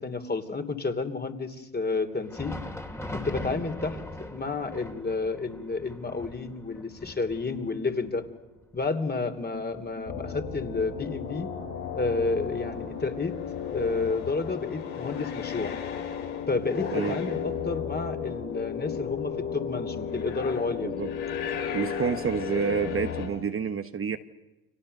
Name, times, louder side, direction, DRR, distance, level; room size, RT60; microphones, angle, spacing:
voice 1, 0.0-2.6 3.1-8.2 8.7-11.5 12.0-13.4 13.7-15.7 16.5-20.9, left 3 dB, 20° left, 8 dB, 3.0 m, -30 dB
Thunder, 2.1-11.6 11.9-12.1 12.8-13.0 13.9-14.0, left 1 dB, 5° left, 2.9 m, -42 dB
sound 1, 10.1-23.3, left 7 dB, 80° left, 5.7 m, -34 dB
voice 2, 16.9-17.2 20.8-21.1 21.7-24.2, right 7 dB, 30° right, 8 dB, 1.2 m, -29 dB
30.0 x 24.5 x 6.7 m, 1.0 s
hypercardioid pair, 70°, 44 cm